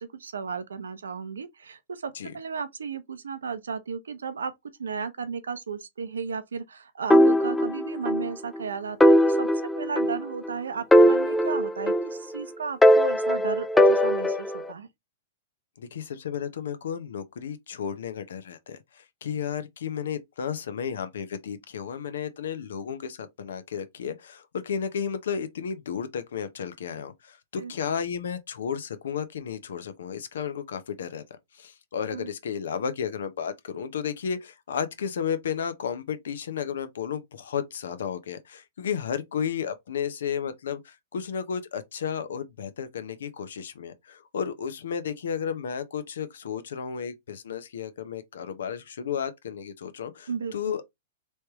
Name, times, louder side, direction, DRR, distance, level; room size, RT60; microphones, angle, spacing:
voice 1, 0.0-4.5 4.8-9.5 9.8-14.9 27.6-27.7 32.1-32.3 50.3-50.8, right 6 dB, 80° right, 0.6 m, -34 dB
sound 1, 7.1-8.3 8.6-8.7 9.0-10.5 10.9-12.4 12.8-14.7, equal, 5° left, 0.4 m, -20 dB
voice 2, 15.8-31.2 31.5-50.9, left 7 dB, 70° left, 0.8 m, -33 dB
3.2 x 3.2 x 2.9 m
hypercardioid pair, 115°, 0 cm